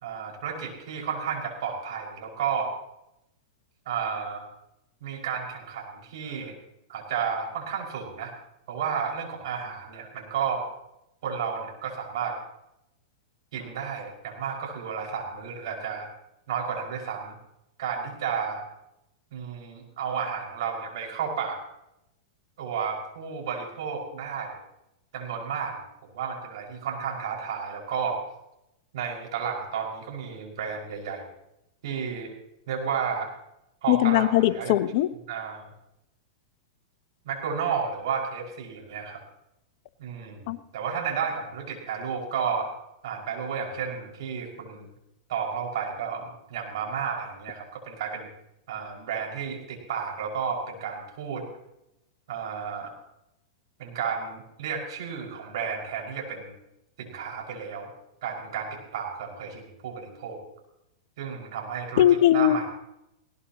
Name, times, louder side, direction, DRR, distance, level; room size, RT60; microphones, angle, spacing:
voice 1, 0.0-2.7 3.9-4.4 5.0-6.5 6.9-8.3 8.7-10.6 11.2-12.4 13.5-16.1 16.5-17.3 17.8-18.6 19.3-21.6 22.6-24.6 25.1-25.8 26.1-28.2 28.9-31.3 31.8-32.3 32.7-33.3 33.8-34.7 35.3-35.6 37.3-39.2 40.0-42.7 43.0-44.9 45.3-48.3 48.7-51.4 52.3-52.9 53.8-56.5 57.0-57.9 58.2-60.4 61.2-62.7, right 6 dB, 65° right, 0 dB, 5.5 m, -32 dB
voice 2, 33.9-35.1 40.5-40.6 62.0-62.7, left 12 dB, 55° left, 13 dB, 1.0 m, -20 dB
19.5 x 18.0 x 3.0 m, 0.86 s
hypercardioid pair, 105°, 3 cm